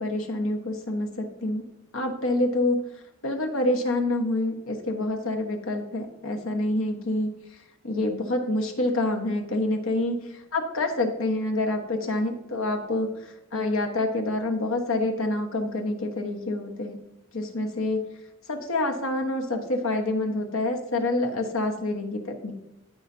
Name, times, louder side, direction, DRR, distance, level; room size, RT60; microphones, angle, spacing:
voice 1, 0.0-1.6 1.9-2.9 3.2-7.4 7.8-17.0 17.3-18.1 18.5-22.5, left 2 dB, 75° left, 3 dB, 1.2 m, -27 dB
13.5 x 4.9 x 2.7 m, 0.90 s
head